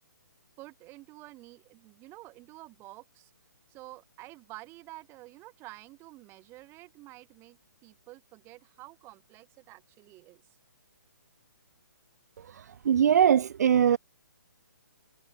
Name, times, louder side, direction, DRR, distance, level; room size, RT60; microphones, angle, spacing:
voice 1, 0.6-3.3 3.7-10.5, right 19 dB, 25° right, 7.4 m, -49 dB
voice 2, 12.5-14.0, right 8 dB, 55° right, 0.5 m, -22 dB
figure-of-eight pair, 140°, 10 cm